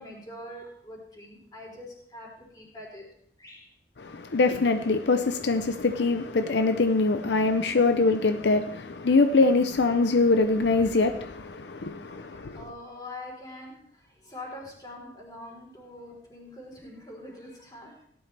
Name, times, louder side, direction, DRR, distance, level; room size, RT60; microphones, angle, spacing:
voice 1, 0.0-3.1 3.4-3.7 12.0-18.1, left 1 dB, 20° left, 3.8 m, -44 dB
voice 2, 4.0-12.7, left 3 dB, 75° left, 0.6 m, -23 dB
17.0 x 11.0 x 3.4 m
head